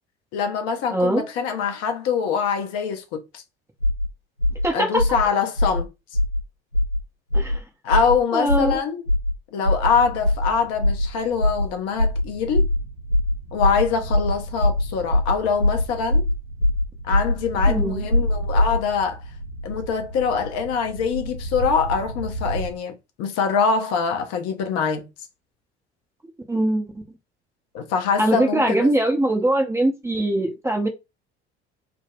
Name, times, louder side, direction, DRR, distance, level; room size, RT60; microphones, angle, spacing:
voice 1, 0.3-3.4 4.7-5.9 7.8-9.0 9.5-12.6 13.5-16.2 17.1-19.2 19.6-25.1 27.7-28.9, left 6 dB, 50° left, 0.7 m, -24 dB
voice 2, 0.9-1.3 4.6-5.0 7.3-7.6 8.3-8.8 17.7-18.0 26.5-26.9 28.2-30.9, right 1 dB, 10° right, 0.5 m, -22 dB
sound 1, 3.8-4.1 4.4-4.6 5.0-5.2 5.6-5.8 6.1-6.4 6.7-7.0 7.3-7.6 7.9-8.1 8.5-8.7 9.1-9.3 9.6-9.9 10.2-10.5 10.8-11.1 11.4-11.6 12.0-12.2 12.5-12.8 13.1-13.3 13.6-13.8 14.1-14.3 14.6-14.8 15.1-15.3 15.6-15.8 16.1-16.3 16.6-16.8 17.1-17.3 17.6-17.8 18.1-18.8, left 1 dB, 90° left, 0.9 m, -20 dB
sound 2, 9.9-22.7, right 1 dB, 80° right, 0.8 m, -34 dB
3.4 x 2.0 x 2.4 m
figure-of-eight pair, 60°, 33 cm